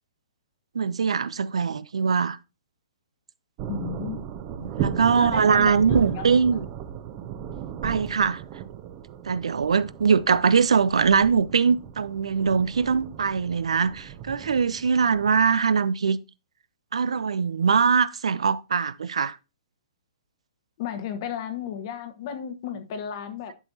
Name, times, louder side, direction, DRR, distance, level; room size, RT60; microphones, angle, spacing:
voice 1, 0.7-2.4 4.6-6.7 7.8-8.4 9.2-16.2 16.9-19.4, right 6 dB, 75° right, 0.5 m, -22 dB
sound 1, 3.6-15.6, right 9 dB, 35° right, 0.8 m, -36 dB
voice 2, 3.7-4.3 5.1-6.4 20.8-23.5, left 8 dB, 45° left, 1.2 m, -34 dB
11.0 x 5.9 x 2.7 m
hypercardioid pair, 125°, 3 cm